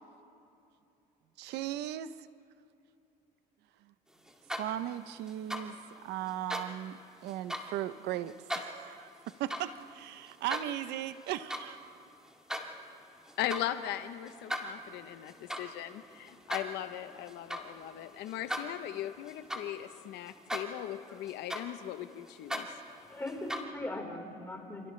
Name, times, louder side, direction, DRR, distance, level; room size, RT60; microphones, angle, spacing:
voice 1, 1.4-2.1 4.6-9.1 9.4-11.8, right 12 dB, 85° right, 13 dB, 0.7 m, -37 dB
sound 1, 4.3-4.9 5.3-5.7 6.3-6.7 7.3-7.7 8.3-8.7 9.3-9.7 10.1-10.7 11.2-11.7 12.0-12.7 13.3-13.7 14.2-20.0 20.3-20.9 21.3-23.6, equal, 5° right, 2.3 m, -39 dB
voice 2, 13.4-22.7, left 12 dB, 85° left, 10 dB, 0.8 m, -39 dB
voice 3, 20.7-21.3 22.8-24.9, left 1 dB, 10° left, 0 dB, 4.2 m, -41 dB
29.0 x 28.0 x 3.2 m, 2.7 s
cardioid pair, 110°, 17 cm